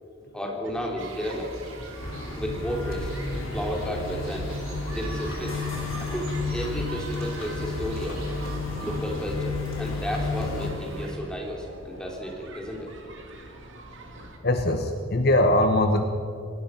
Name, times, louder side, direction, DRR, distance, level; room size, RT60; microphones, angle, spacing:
voice 1, 0.3-1.5 2.4-3.1 3.5-4.5 4.9-5.6 6.0-8.2 8.8-12.9, equal, 5° left, -1 dB, 3.4 m, -33 dB
sound 1, 0.6-14.4, right 2 dB, 60° right, 2.5 m, -43 dB
sound 2, 1.0-11.1, right 3 dB, 85° right, 5.0 m, -45 dB
voice 2, 1.9-2.3 4.9-5.0 11.9-12.1 14.2-16.0, left 1 dB, 45° left, 6 dB, 1.1 m, -24 dB
sound 3, 2.0-10.7, left 3 dB, 75° left, 3.9 m, -32 dB
28.0 x 19.0 x 5.9 m, 2.5 s
head